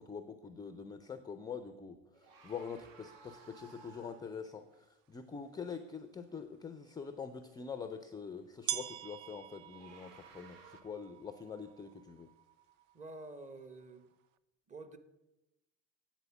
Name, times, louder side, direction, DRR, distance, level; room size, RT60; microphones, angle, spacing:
voice 1, 0.0-2.0 2.4-12.3, left 6 dB, 10° left, 0.3 m, -45 dB
sound 1, 2.1-4.4 9.5-10.8, right 4 dB, 70° right, 1.1 m, -58 dB
sound 2, 4.7-4.8 5.6-5.7 7.4-7.5 8.7-14.3, right 11 dB, 50° right, 0.5 m, -45 dB
voice 2, 12.9-14.1 14.7-15.0, right 2 dB, 20° right, 0.8 m, -48 dB
8.2 x 4.3 x 6.8 m
hypercardioid pair, 85°, 38 cm